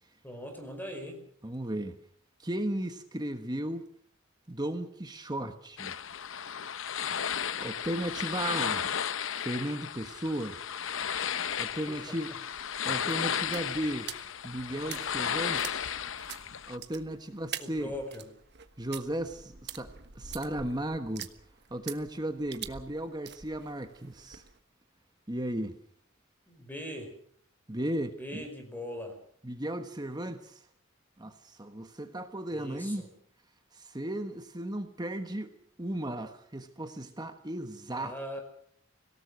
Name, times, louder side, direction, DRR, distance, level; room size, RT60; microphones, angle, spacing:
voice 1, 0.2-1.3 11.9-12.4 14.6-15.3 17.6-18.3 26.5-27.1 28.2-29.2 32.5-33.1 37.9-38.4, equal, 10° left, 4 dB, 5.2 m, -41 dB
voice 2, 1.4-2.0 2.4-3.8 4.5-5.9 7.6-8.9 9.4-10.6 11.6-12.3 12.8-14.1 14.4-15.9 16.7-17.9 18.8-21.3 21.7-24.4 25.3-25.8 27.7-28.4 29.4-30.6 31.2-33.1 33.7-35.5 35.8-38.4, right 1 dB, 20° right, 7 dB, 1.3 m, -35 dB
sound 1, 5.8-16.8, left 8 dB, 60° left, 0.8 m, -34 dB
sound 2, 11.5-24.6, right 9 dB, 50° right, 1.4 m, -46 dB
25.5 x 18.0 x 6.3 m, 0.62 s
head